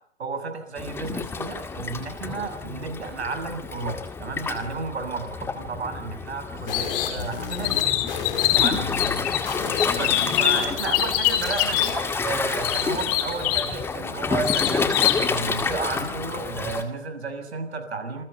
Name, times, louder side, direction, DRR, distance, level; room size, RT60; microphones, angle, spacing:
voice 1, 0.2-8.0 8.5-8.8 9.9-18.2, right 4 dB, 65° right, 8 dB, 6.9 m, -32 dB
Waves surf, 0.8-16.8, left 5 dB, 5° left, 2.0 m, -30 dB
sound 1, 6.7-12.0, left 6 dB, 50° left, 5.9 m, -33 dB
sound 2, 6.7-7.2 7.5-9.4 9.7-11.9 12.6-13.7 14.4-15.2, left 13 dB, 25° left, 3.3 m, -24 dB
28.0 x 21.5 x 6.9 m, 0.64 s
figure-of-eight pair, 130°, 35 cm